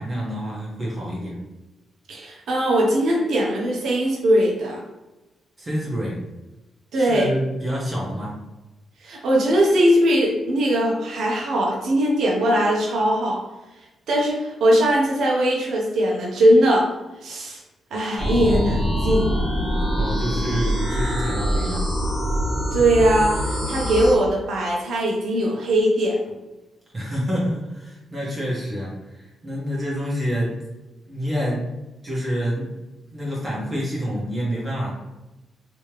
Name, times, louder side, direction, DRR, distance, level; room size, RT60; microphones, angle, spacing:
voice 1, 0.0-1.3 5.6-6.2 6.9-8.3 19.9-21.8 26.9-30.6 31.1-31.7 32.0-32.7 33.1-34.9, equal, 30° right, -5 dB, 1.3 m, -27 dB
voice 2, 2.1-4.8 6.9-7.3 9.0-13.4 14.1-16.9 17.2-17.6 17.9-19.3 22.7-26.2, right 1 dB, 75° right, -2 dB, 1.0 m, -20 dB
sound 1, 18.2-24.1, equal, 20° left, 1.4 m, -24 dB
3.2 x 3.1 x 3.3 m, 1.0 s
cardioid pair, 100°, 0 cm